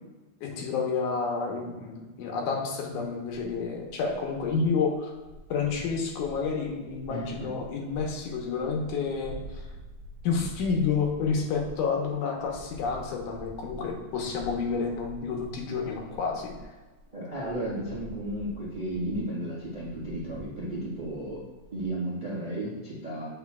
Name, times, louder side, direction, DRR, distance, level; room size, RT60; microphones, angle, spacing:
voice 1, 0.4-5.1 5.5-9.7 10.2-16.5, left 5 dB, 90° left, 1 dB, 2.4 m, -29 dB
sound 1, 3.2-17.0 17.3-21.9, equal, 70° right, 0.9 m, -47 dB
voice 2, 7.1-7.5 17.1-21.4 21.7-23.3, right 1 dB, 25° right, -7 dB, 1.1 m, -33 dB
8.2 x 5.5 x 2.3 m, 1.2 s
omnidirectional pair, 3.5 m